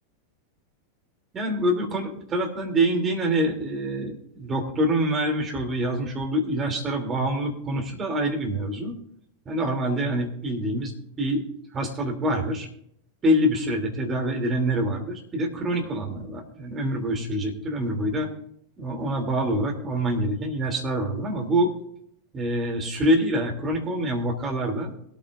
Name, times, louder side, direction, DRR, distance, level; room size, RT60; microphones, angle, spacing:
voice 1, 1.3-8.9 9.4-11.4 11.7-12.7 13.2-18.3 18.8-21.7 22.3-24.9, right 1 dB, 25° right, 1 dB, 3.1 m, -26 dB
23.0 x 9.0 x 2.6 m, 0.69 s
figure-of-eight pair, 90°, 0 cm